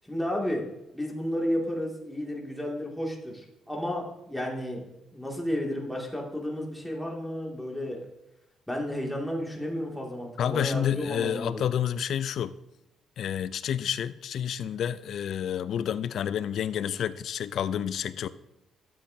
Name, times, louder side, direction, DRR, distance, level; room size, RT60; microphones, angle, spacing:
voice 1, 0.0-4.8 5.1-8.0 8.7-11.6, equal, 5° left, -1 dB, 2.2 m, -32 dB
voice 2, 10.4-12.5 13.2-18.3, left 9 dB, 70° left, 15 dB, 0.4 m, -29 dB
12.0 x 7.8 x 2.7 m, 0.91 s
cardioid pair, 90°, 0 cm